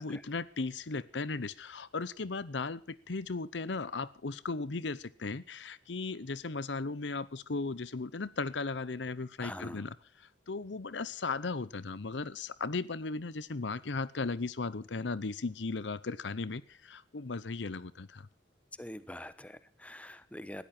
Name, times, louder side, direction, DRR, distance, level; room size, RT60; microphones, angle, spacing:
voice 1, 0.0-9.9 10.5-18.3, left 3 dB, 75° left, 0.8 m, -36 dB
voice 2, 9.4-9.9 18.8-20.7, left 1 dB, 5° left, 1.0 m, -45 dB
19.5 x 13.5 x 4.4 m
head